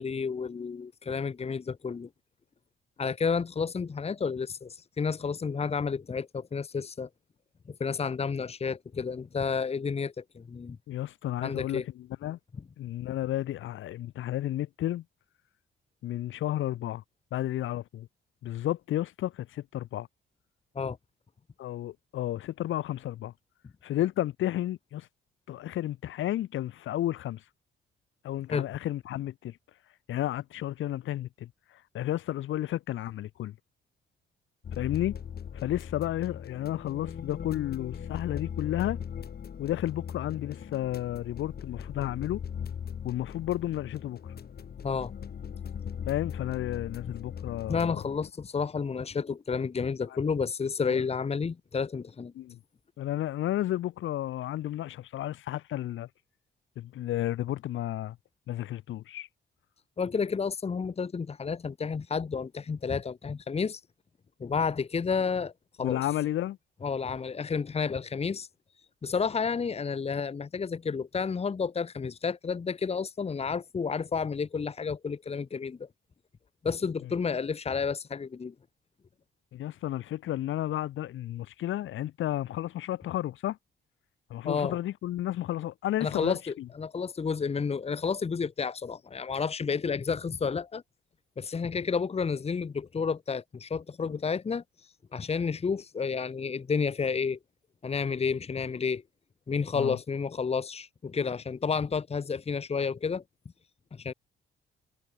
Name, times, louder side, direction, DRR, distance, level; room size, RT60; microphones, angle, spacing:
voice 1, 0.0-2.1 3.0-7.1 7.8-10.8 11.4-11.8 20.7-21.0 28.5-28.7 44.8-45.1 47.7-52.3 60.0-63.8 64.4-65.5 65.8-66.0 66.8-68.5 69.0-75.8 76.6-78.5 84.4-84.8 86.0-90.8 91.4-94.6 95.1-97.4 97.8-99.0 99.5-103.2 103.9-104.1, left 5 dB, 30° left, 1.3 m, -31 dB
voice 2, 10.9-12.4 12.8-15.0 16.0-17.0 17.3-18.1 18.4-20.1 21.6-23.3 23.8-25.1 25.5-27.4 28.2-29.6 30.1-33.6 34.8-35.2 35.5-39.0 39.6-42.4 43.0-44.3 46.1-48.0 50.9-51.0 52.3-52.6 53.0-56.1 56.8-58.2 58.5-59.3 65.8-66.6 77.0-77.1 79.5-83.6 84.3-86.7 99.7-100.0, left 13 dB, 80° left, 2.1 m, -32 dB
sound 1, 34.6-48.3, left 7 dB, 50° left, 4.8 m, -39 dB
cardioid pair, 90°, 20 cm